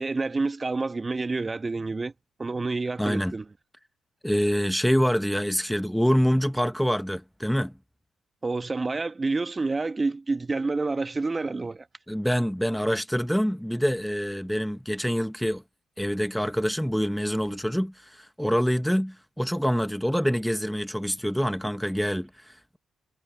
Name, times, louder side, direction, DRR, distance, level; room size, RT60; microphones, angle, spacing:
voice 1, 0.0-2.1 2.4-3.4 8.4-11.9, right 3 dB, 30° right, 1.7 m, -28 dB
voice 2, 3.0-3.3 4.2-7.7 12.1-15.6 16.0-22.8, equal, ahead, 1.5 m, -26 dB
hypercardioid pair, 40°, 0 cm